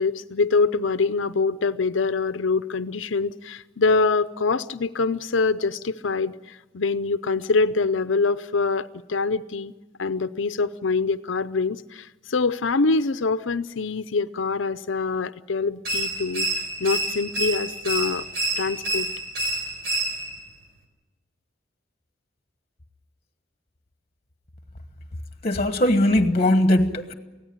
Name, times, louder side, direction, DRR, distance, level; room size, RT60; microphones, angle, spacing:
voice 1, 0.0-9.7 10.0-18.2 18.6-19.1, left 4 dB, 85° left, 13 dB, 0.7 m, -24 dB
sound 1, 15.8-20.5, right 1 dB, 55° right, 4.7 m, -28 dB
voice 2, 25.4-27.1, left 1 dB, 35° left, 9 dB, 1.3 m, -20 dB
24.0 x 17.0 x 9.6 m, 1.2 s
head